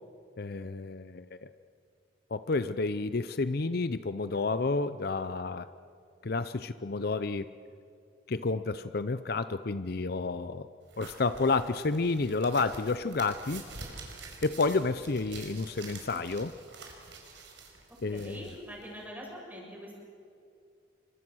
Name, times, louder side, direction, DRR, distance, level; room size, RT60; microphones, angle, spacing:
voice 1, 0.4-1.5 2.3-5.7 6.2-7.5 8.3-10.7 11.0-13.6 14.4-16.5 18.0-18.5, left 3 dB, 55° left, 13 dB, 0.6 m, -30 dB
sound 1, 10.9-19.1, right 4 dB, 70° right, 4.9 m, -48 dB
voice 2, 17.9-20.0, equal, 10° right, -2 dB, 6.8 m, -44 dB
27.5 x 24.5 x 6.3 m, 2.5 s
head